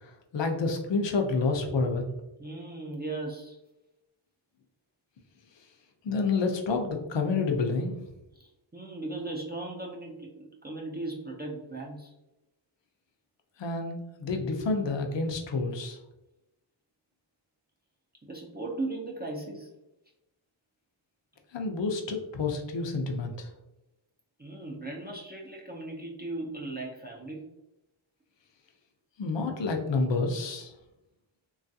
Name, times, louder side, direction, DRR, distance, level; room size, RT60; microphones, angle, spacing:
voice 1, 0.0-2.1 6.0-8.0 13.6-16.0 21.5-23.5 29.2-30.7, left 3 dB, 60° left, 3 dB, 0.6 m, -29 dB
voice 2, 2.4-3.6 8.3-12.1 18.2-19.7 24.4-27.4, right 2 dB, 20° right, -2 dB, 0.5 m, -37 dB
3.0 x 2.4 x 2.6 m, 0.93 s
wide cardioid pair, 70°, 50 cm